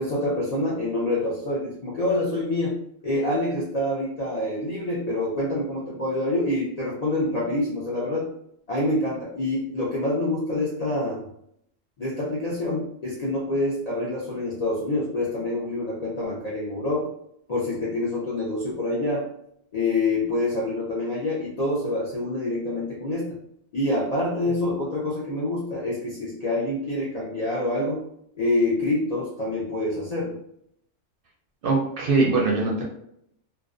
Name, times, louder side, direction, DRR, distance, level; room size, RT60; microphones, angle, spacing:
voice 1, 0.0-2.8 3.0-8.3 8.7-11.3 12.0-17.1 17.5-19.3 19.7-23.4 23.7-28.1 28.4-30.4, left 2 dB, 60° left, -5 dB, 0.4 m, -26 dB
voice 2, 31.6-32.8, right 3 dB, 60° right, -2 dB, 0.6 m, -22 dB
2.4 x 2.2 x 2.4 m, 0.71 s
omnidirectional pair, 1.3 m